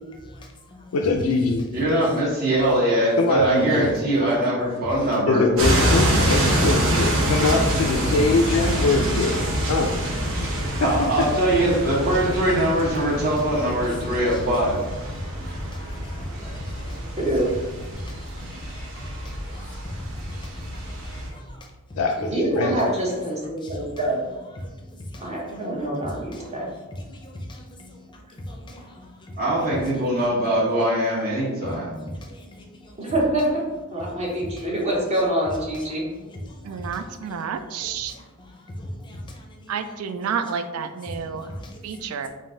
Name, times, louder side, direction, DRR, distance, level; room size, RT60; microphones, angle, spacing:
voice 1, 0.1-0.9 1.9-2.1 2.5-3.2 3.4-5.2 6.0-6.4 6.9-7.5 8.1-8.2 9.3-9.6 10.1-10.8 11.9-14.5 14.8-22.0 22.8-23.2 23.6-24.0 24.5-30.6 31.6-33.1 34.0-35.0 35.7-40.0 41.0-42.2, left 1 dB, 20° left, 0.5 m, -41 dB
voice 2, 0.9-1.7 3.2-3.9 5.3-9.4 9.7-10.0 10.4-10.5 10.8-11.3 22.0-22.8, left 3 dB, 90° left, 0.4 m, -23 dB
voice 3, 1.7-5.5 10.8-14.8 29.4-31.9, right 1 dB, 45° right, 1.4 m, -22 dB
sound 1, 5.6-21.3, right 1 dB, 65° right, 0.9 m, -26 dB
voice 4, 17.2-17.5 22.2-24.2 25.2-26.7 33.0-33.6 33.9-36.0, right 1 dB, 30° right, 1.0 m, -25 dB
voice 5, 36.6-38.1 39.7-41.5 41.8-42.3, right 6 dB, 90° right, 0.3 m, -30 dB
3.8 x 2.6 x 3.8 m
head